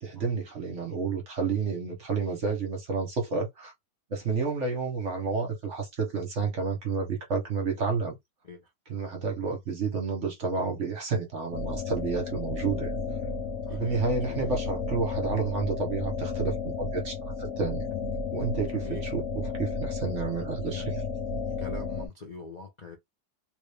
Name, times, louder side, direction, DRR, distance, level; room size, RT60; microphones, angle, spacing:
voice 1, 0.0-3.7 4.1-8.2 8.9-12.9 13.7-17.9 18.3-21.0, right 4 dB, 45° right, 1.2 m, -30 dB
sound 1, 11.5-22.1, left 4 dB, 60° left, 1.0 m, -33 dB
voice 2, 13.6-14.5 18.6-19.0 20.7-20.8 21.6-23.0, left 4 dB, 80° left, 0.3 m, -43 dB
3.5 x 2.6 x 3.3 m
omnidirectional pair, 2.0 m